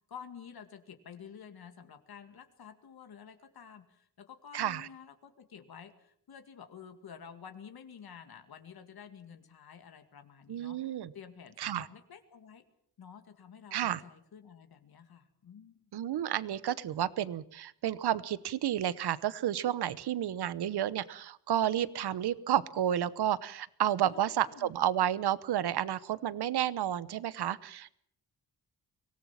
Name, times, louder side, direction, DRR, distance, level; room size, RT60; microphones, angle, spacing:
voice 1, 0.1-12.6 13.0-15.9 24.0-24.7, left 7 dB, 65° left, 7 dB, 2.2 m, -51 dB
voice 2, 4.5-4.9 10.5-11.1 11.6-11.9 13.7-14.0 15.9-28.0, right 11 dB, 75° right, 18 dB, 1.0 m, -31 dB
24.5 x 18.0 x 7.4 m, 0.66 s
wide cardioid pair, 120°, 40 cm